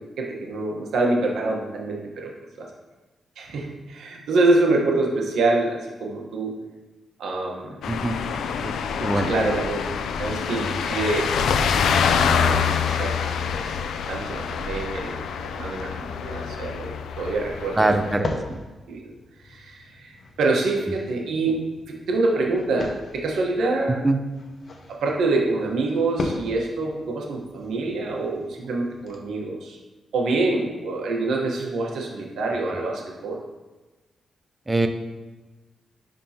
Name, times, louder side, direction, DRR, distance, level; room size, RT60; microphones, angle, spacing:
voice 1, 0.2-2.3 2.6-2.7 3.4-6.5 7.2-7.8 9.0-9.8 10.2-11.4 11.8-13.1 14.1-17.9 18.9-19.1 19.4-21.6 21.9-24.1 24.9-29.8 30.1-33.4, right 2 dB, 85° right, 0 dB, 1.1 m, -26 dB
sound 1, 7.8-18.1, left 6 dB, 90° left, 0.4 m, -26 dB
voice 2, 9.0-9.3 17.8-18.3 24.0-24.2 34.7-34.9, right 2 dB, 15° right, 6 dB, 0.5 m, -22 dB
sound 2, 16.8-29.2, left 2 dB, 45° left, 0.8 m, -39 dB
10.5 x 3.7 x 2.8 m, 1.2 s
cardioid pair, 110°, 0 cm